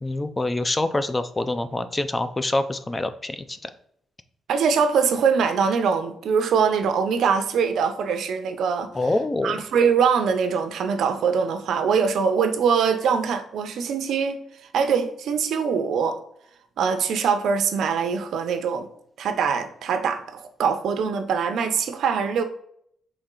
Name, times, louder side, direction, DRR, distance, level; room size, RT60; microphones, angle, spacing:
voice 1, 0.0-3.7 8.9-9.6, left 2 dB, 15° left, 11 dB, 0.4 m, -26 dB
voice 2, 4.5-8.9 9.4-14.4 14.7-16.2 16.8-18.9 19.2-22.4, right 6 dB, 65° right, 8 dB, 0.6 m, -23 dB
4.3 x 3.2 x 3.7 m, 0.69 s
cardioid pair, 145°, 0 cm